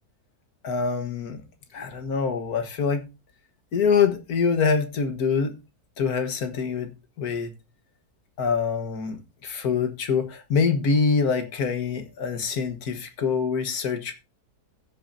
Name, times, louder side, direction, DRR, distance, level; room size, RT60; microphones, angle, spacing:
voice 1, 0.6-1.4 1.7-3.0 3.7-5.6 6.0-7.5 8.4-14.1, left 5 dB, 65° left, 1.9 m, -25 dB
16.0 x 7.4 x 2.7 m
omnidirectional pair, 1.7 m